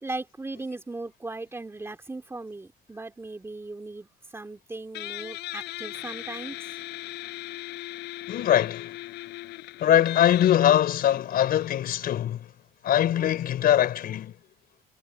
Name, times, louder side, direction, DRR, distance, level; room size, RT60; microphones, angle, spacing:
voice 1, 0.0-6.6, right 2 dB, 15° right, 3.0 m, -38 dB
Guitar, 4.9-12.1, left 17 dB, 80° left, 5.9 m, -39 dB
voice 2, 8.3-8.9 9.8-12.5 12.8-14.3, left 11 dB, 60° left, 4.9 m, -22 dB
cardioid pair, 110°, 17 cm